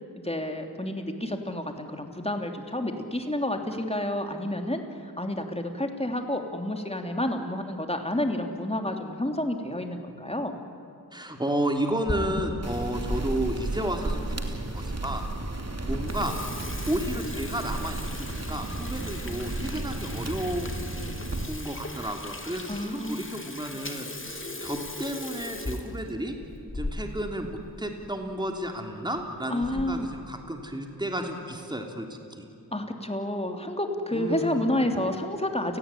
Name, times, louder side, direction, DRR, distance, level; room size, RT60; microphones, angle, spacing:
voice 1, 0.2-4.8 5.2-10.5 22.7-23.2 29.5-30.1 32.7-35.8, left 1 dB, 15° left, 4 dB, 3.2 m, -29 dB
voice 2, 11.1-15.2 15.9-16.3 16.9-20.7 21.5-26.3 26.7-32.4 34.1-34.6, right 1 dB, 10° right, 3 dB, 3.2 m, -32 dB
Water tap faucet / Sink (filling or washing), 11.8-13.2 13.7-13.8 14.5-14.6 15.0-15.1 15.4-15.6 15.9-27.3 27.6-27.7 28.0-28.1 28.9-29.2 29.6-30.0, left 2 dB, 30° left, 2.8 m, -38 dB
sound 1, 12.6-21.5, right 2 dB, 40° right, 2.9 m, -33 dB
29.5 x 18.5 x 10.0 m, 3.0 s
wide cardioid pair, 65°, 38 cm